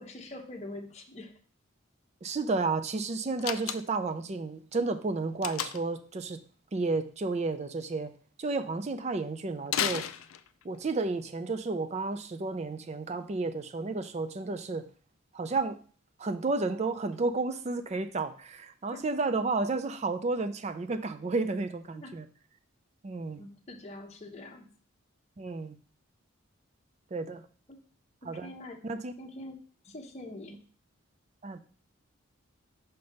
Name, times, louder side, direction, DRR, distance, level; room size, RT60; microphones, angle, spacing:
voice 1, 0.0-1.3 18.9-19.0 22.0-22.1 23.4-24.7 27.7-27.8 28.4-28.8 29.2-29.6 29.8-30.6, left 1 dB, 30° left, 2 dB, 0.8 m, -44 dB
voice 2, 2.2-6.4 6.7-8.1 8.4-10.1 10.6-14.9 15.3-15.8 16.2-22.3 23.0-23.4 25.4-25.8 27.1-27.4 28.2-28.5 28.8-29.1 31.4-31.6, right 3 dB, 30° right, 10 dB, 0.4 m, -32 dB
Slam, 3.4-4.1 5.4-6.0 9.7-10.8, left 10 dB, 80° left, 0.4 m, -33 dB
5.7 x 3.4 x 5.3 m, 0.42 s
head